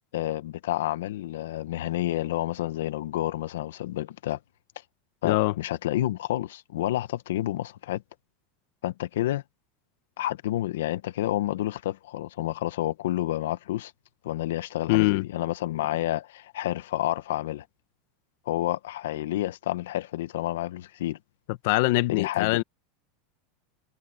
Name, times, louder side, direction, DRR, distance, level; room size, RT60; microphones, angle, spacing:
voice 1, 0.1-4.4 5.2-8.0 8.8-9.4 10.2-13.9 14.2-17.6 18.5-21.2 22.1-22.6, left 14 dB, 90° left, 1.3 m, -29 dB
voice 2, 14.9-15.2 21.6-22.6, left 20 dB, 65° left, 1.4 m, -23 dB
supercardioid pair, 150°, 0 cm